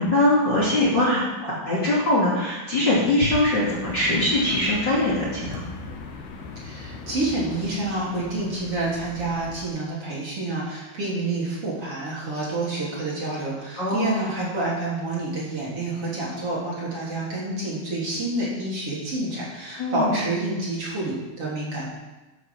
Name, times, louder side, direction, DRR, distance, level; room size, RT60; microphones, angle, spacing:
voice 1, 0.0-5.6 13.8-14.3 19.8-20.2, left 1 dB, 30° left, -8 dB, 3.0 m, -22 dB
Entrenamiento Futbol Adultos Coches al Fondo, 3.7-9.7, left 4 dB, 90° left, 3.2 m, -38 dB
voice 2, 6.6-21.8, right 2 dB, 40° right, -7 dB, 3.8 m, -28 dB
13.0 x 8.5 x 6.2 m, 1.1 s
omnidirectional pair, 4.4 m